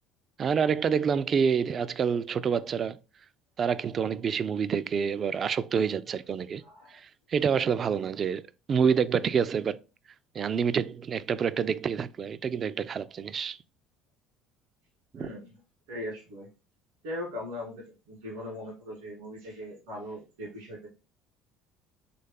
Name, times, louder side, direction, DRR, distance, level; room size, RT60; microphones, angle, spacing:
voice 1, 0.4-3.0 3.6-6.6 6.9-8.4 8.7-9.8 10.3-13.6 15.1-15.3, right 6 dB, 40° right, 0.3 m, -27 dB
voice 2, 6.6-7.0 15.1-15.6 15.9-16.5 17.0-20.9, left 1 dB, 85° right, 2.5 m, -39 dB
4.2 x 3.3 x 3.4 m
hypercardioid pair, 70°, 0 cm